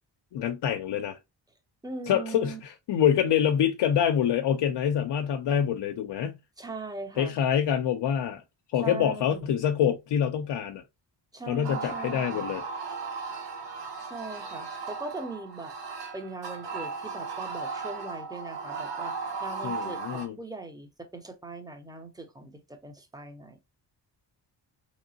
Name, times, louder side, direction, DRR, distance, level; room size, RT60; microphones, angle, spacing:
voice 1, 0.3-1.2 2.1-6.4 7.2-8.4 8.7-10.8 11.5-12.6 19.6-20.4, left 9 dB, 65° left, 0.6 m, -26 dB
voice 2, 1.8-2.6 6.6-7.3 8.8-9.6 11.3-12.6 14.0-15.7 16.1-23.6, right 3 dB, 10° right, 0.7 m, -40 dB
sound 1, 11.6-20.3, right 4 dB, 70° right, 1.2 m, -36 dB
3.5 x 3.0 x 2.7 m
cardioid pair, 100°, 44 cm